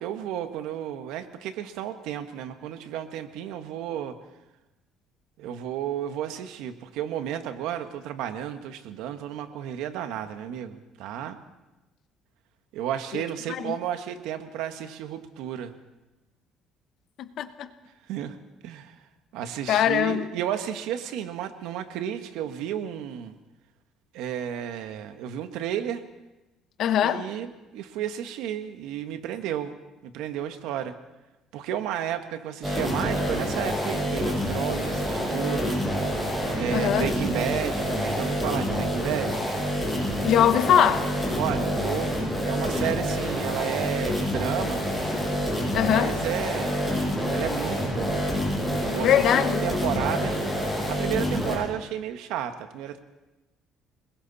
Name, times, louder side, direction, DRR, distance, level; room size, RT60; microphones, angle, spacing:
voice 1, 0.0-4.2 5.4-11.4 12.7-15.7 18.1-18.4 18.6-19.0 19.3-23.4 24.1-26.0 27.0-29.8 30.0-31.0 31.5-39.5 41.3-42.2 42.4-44.9 45.8-47.0 47.3-48.3 48.7-50.4 50.9-53.0, right 10 dB, 80° right, 1.7 m, -32 dB
voice 2, 17.2-17.7 19.7-20.2 26.8-27.2 36.7-37.1 40.2-41.1 45.7-46.1 49.0-49.6, left 10 dB, 55° left, 1.3 m, -22 dB
sound 1, 32.6-51.6, equal, 5° right, 7.6 m, -27 dB
29.0 x 21.0 x 4.3 m
cardioid pair, 130°, 0 cm